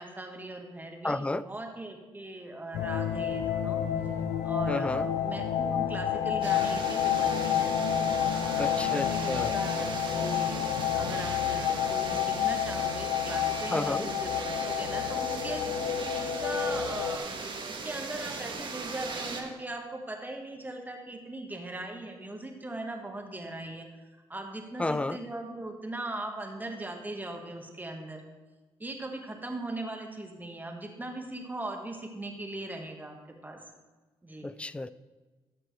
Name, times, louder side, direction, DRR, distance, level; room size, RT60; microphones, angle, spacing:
voice 1, 0.0-3.8 4.4-7.7 8.3-14.3 14.6-15.7 16.1-17.4 17.7-28.2 28.8-33.6 34.2-34.5, right 2 dB, 15° right, 3 dB, 1.5 m, -39 dB
voice 2, 1.0-1.5 4.7-5.1 8.6-9.5 13.7-14.1 24.8-25.2 34.4-34.9, left 2 dB, 10° left, 17 dB, 0.3 m, -31 dB
sound 1, 2.7-17.2, left 9 dB, 90° left, 0.5 m, -29 dB
sound 2, 6.4-19.4, right 4 dB, 50° right, 1.4 m, -38 dB
13.5 x 6.0 x 3.3 m, 1.3 s
supercardioid pair, 60°, 11 cm